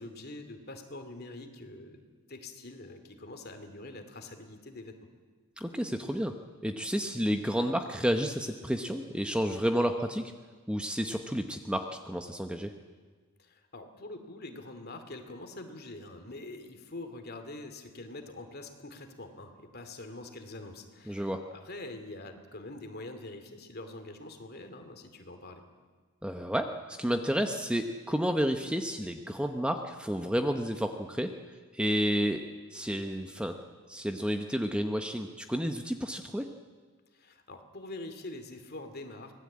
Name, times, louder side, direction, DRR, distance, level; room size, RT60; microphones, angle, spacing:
voice 1, 0.0-2.0 2.3-5.0 13.4-25.6 37.1-39.3, left 2 dB, 45° left, 7 dB, 2.5 m, -44 dB
voice 2, 5.6-6.3 6.6-10.2 10.7-12.7 21.1-21.4 26.2-31.3 31.7-32.4 32.7-33.5 33.9-36.5, equal, 5° right, 5 dB, 0.9 m, -30 dB
25.0 x 18.5 x 8.6 m, 1.5 s
head